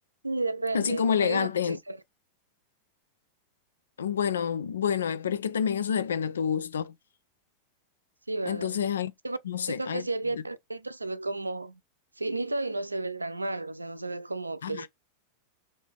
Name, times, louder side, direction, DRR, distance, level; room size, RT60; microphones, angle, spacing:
voice 1, 0.2-2.0 8.3-8.8 9.2-9.4 9.7-11.8 12.2-14.9, right 2 dB, 80° right, 0.3 m, -32 dB
voice 2, 0.7-1.8 4.0-6.9 8.5-9.1 9.5-10.0 10.3-10.4 14.6-14.9, left 7 dB, 65° left, 0.3 m, -28 dB
3.1 x 2.7 x 3.5 m
figure-of-eight pair, 90°, 0 cm